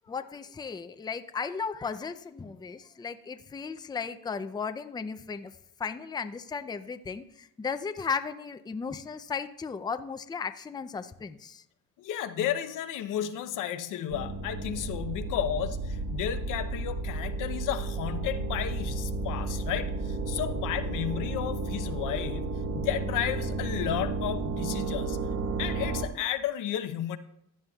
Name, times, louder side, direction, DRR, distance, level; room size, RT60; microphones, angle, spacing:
voice 1, 0.1-5.5 5.8-11.6, left 5 dB, 15° left, 0.5 m, -35 dB
voice 2, 12.0-25.2 25.6-27.2, left 11 dB, 80° left, 0.8 m, -33 dB
sound 1, 14.1-26.1, right 3 dB, 65° right, 1.4 m, -32 dB
15.5 x 9.3 x 2.3 m
cardioid pair, 105°, 31 cm